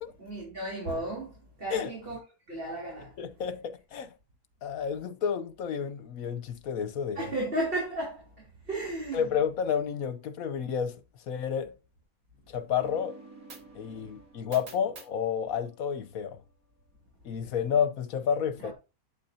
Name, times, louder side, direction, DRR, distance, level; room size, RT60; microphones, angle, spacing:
voice 1, 0.2-2.2 2.5-3.1 7.1-8.2 8.7-9.3 18.6-18.7, right 1 dB, 40° right, 3.5 m, -34 dB
voice 2, 3.2-4.1 4.6-7.3 9.1-11.8 12.5-13.2 13.7-16.4 17.2-18.7, left 7 dB, 75° left, 1.2 m, -30 dB
sound 1, 12.8-16.4, right 3 dB, 75° right, 2.0 m, -50 dB
8.4 x 8.2 x 2.7 m
omnidirectional pair, 1.5 m